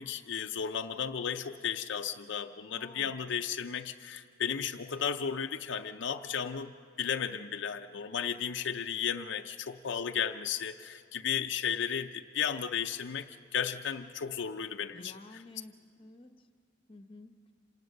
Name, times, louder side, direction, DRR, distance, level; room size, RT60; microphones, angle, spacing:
voice 1, 0.0-6.7 7.0-15.4, left 7 dB, 65° left, 6 dB, 0.5 m, -34 dB
voice 2, 2.7-3.2 14.9-15.7 16.0-16.3 16.9-17.3, left 2 dB, 25° left, 8 dB, 0.9 m, -50 dB
27.0 x 19.0 x 6.5 m, 2.4 s
head